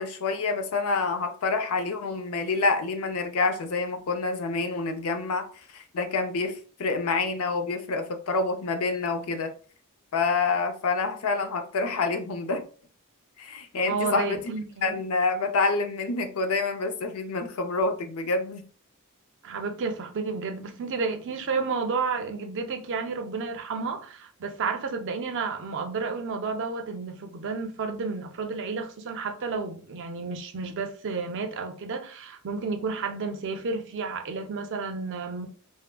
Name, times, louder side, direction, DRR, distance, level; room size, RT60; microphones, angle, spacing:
voice 1, 0.0-9.5 10.1-12.6 13.4-14.4 14.8-18.6, left 3 dB, 80° left, 0.5 m, -27 dB
voice 2, 13.8-14.9 19.4-35.5, right 4 dB, 60° right, 0.5 m, -31 dB
3.4 x 2.0 x 2.2 m
head